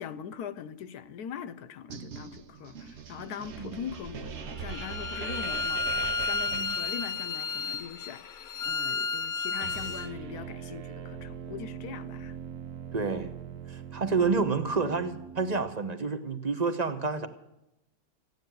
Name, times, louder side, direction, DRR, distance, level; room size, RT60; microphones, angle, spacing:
voice 1, 0.0-12.4, left 8 dB, 80° left, 1.2 m, -41 dB
sound 1, 1.9-7.5, right 6 dB, 55° right, 1.0 m, -41 dB
Bowed string instrument, 4.7-10.1, left 4 dB, 65° left, 0.5 m, -32 dB
sound 2, 9.6-15.7, right 8 dB, 75° right, 1.4 m, -42 dB
voice 2, 12.9-13.4 13.7-17.3, right 4 dB, 35° right, 0.9 m, -29 dB
15.0 x 9.4 x 9.2 m
omnidirectional pair, 1.6 m